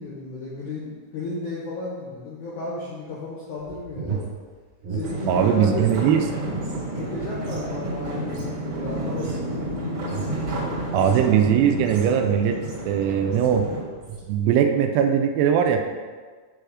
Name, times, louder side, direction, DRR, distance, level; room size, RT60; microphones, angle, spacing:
voice 1, 0.0-4.2 4.9-5.9 6.9-9.7, left 3 dB, 80° left, -6 dB, 1.7 m, -33 dB
sound 1, 3.6-6.0 6.3-13.0 13.3-13.7 14.0-14.3, right 5 dB, 65° right, 2.1 m, -37 dB
sound 2, 5.0-13.8, right 1 dB, 50° right, 2.4 m, -31 dB
voice 2, 5.3-6.2 10.9-12.6 12.9-13.7 14.3-15.8, right 8 dB, 85° right, 5 dB, 2.6 m, -20 dB
7.7 x 3.3 x 4.9 m, 1.5 s
omnidirectional pair, 4.9 m